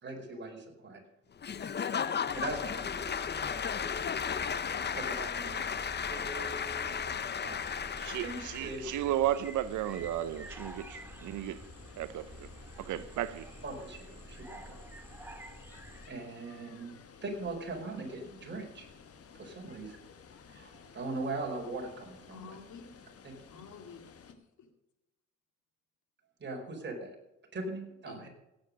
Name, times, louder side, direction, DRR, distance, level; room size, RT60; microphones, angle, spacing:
voice 1, 0.0-1.0 2.3-3.7 4.9-5.7 6.0-7.6 8.2-8.9 13.6-14.8 16.1-16.9 17.2-18.9 19.3-20.0 20.5-22.6 23.2-23.3 26.4-27.1 27.5-28.3, right 2 dB, 35° right, 4.9 m, -40 dB
Applause / Crowd, 1.4-8.7, left 7 dB, 35° left, 0.7 m, -34 dB
sound 1, 2.3-16.1, equal, 5° right, 2.0 m, -49 dB
Water, 5.9-24.3, left 6 dB, 50° left, 1.4 m, -55 dB
voice 2, 7.7-11.6 11.9-12.5 12.8-13.5, right 12 dB, 75° right, 0.7 m, -34 dB
voice 3, 22.3-23.1 23.5-24.7 28.1-28.2, left 5 dB, 75° left, 2.2 m, -50 dB
17.0 x 8.7 x 5.3 m
cardioid pair, 90°, 30 cm